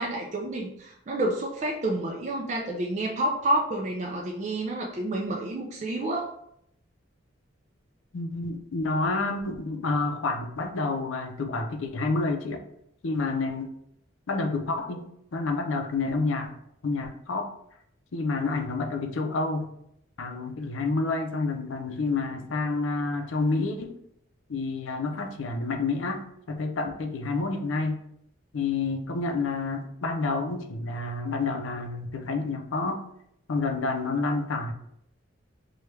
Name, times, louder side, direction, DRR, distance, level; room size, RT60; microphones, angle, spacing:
voice 1, 0.0-6.4, right 1 dB, 35° right, -1 dB, 0.3 m, -29 dB
voice 2, 8.1-12.6 13.0-13.8 14.3-16.5 16.8-17.5 18.1-19.7 20.2-24.0 24.5-28.0 28.5-33.0 33.5-34.7, left 3 dB, 75° left, 5 dB, 0.5 m, -29 dB
3.2 x 2.3 x 3.1 m, 0.74 s
head